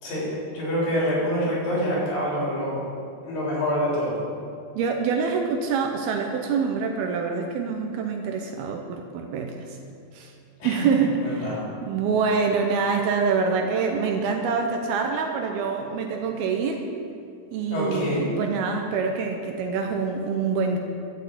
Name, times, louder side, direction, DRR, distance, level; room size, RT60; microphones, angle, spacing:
voice 1, 0.0-2.8 3.2-4.2 10.6-10.8 11.2-11.7 17.7-18.2, equal, 60° left, -6 dB, 5.3 m, -26 dB
voice 2, 4.8-9.7 10.1-10.3 10.6-16.9 17.5-20.8, right 5 dB, 80° right, 3 dB, 2.5 m, -25 dB
12.5 x 6.3 x 8.4 m, 2.4 s
omnidirectional pair, 4.8 m